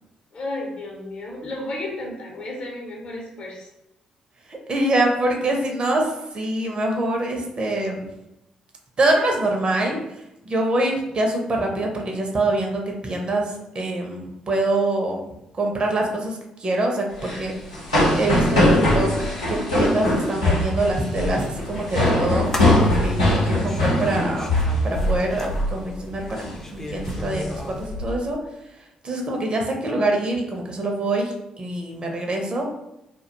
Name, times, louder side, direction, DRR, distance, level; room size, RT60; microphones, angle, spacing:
voice 1, 0.3-3.7, left 1 dB, 50° left, -1 dB, 0.7 m, -33 dB
voice 2, 4.5-8.1 9.0-10.0 10.4-15.2 15.5-17.5 18.2-18.7 18.9-19.1 19.5-22.6 23.0-24.5 24.8-28.4 29.0-32.7, right 2 dB, 40° right, 1 dB, 0.5 m, -24 dB
sound 1, 17.1-25.2 25.5-25.8 26.1-26.5 26.9-28.0, left 1 dB, 90° left, 0.7 m, -21 dB
sound 2, 21.4-27.9, left 1 dB, 15° left, 0.4 m, -36 dB
2.3 x 2.1 x 2.8 m, 0.89 s
figure-of-eight pair, 40°, 3 cm